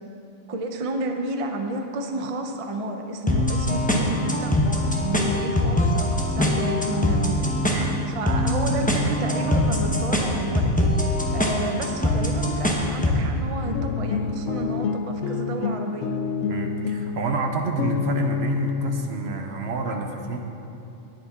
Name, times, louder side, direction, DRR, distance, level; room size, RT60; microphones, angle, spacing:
voice 1, 0.5-7.4 8.1-10.9 11.3-16.1, right 2 dB, 40° right, 4 dB, 0.5 m, -31 dB
sound 1, 3.3-13.3, left 1 dB, 5° left, 0.8 m, -23 dB
voice 2, 7.7-8.0 16.5-20.4, right 4 dB, 55° right, 4 dB, 0.9 m, -29 dB
sound 2, 13.6-19.1, left 6 dB, 65° left, 0.8 m, -28 dB
19.0 x 7.0 x 3.7 m, 2.8 s
omnidirectional pair, 1.5 m